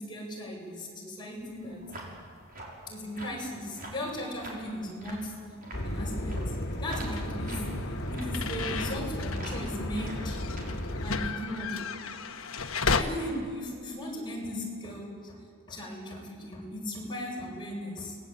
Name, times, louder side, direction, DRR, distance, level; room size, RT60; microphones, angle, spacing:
voice 1, 0.0-2.0 2.9-5.4 5.8-7.8 8.1-10.4 11.0-11.9 13.0-15.4 15.7-18.2, left 1 dB, 20° left, -2 dB, 7.0 m, -37 dB
sound 1, 1.4-11.0, right 1 dB, 45° right, 6.2 m, -46 dB
sound 2, 5.7-11.3, left 1 dB, 50° left, 2.6 m, -34 dB
sound 3, 7.2-13.0, left 5 dB, 70° left, 1.5 m, -34 dB
30.0 x 20.5 x 9.0 m, 2.2 s
head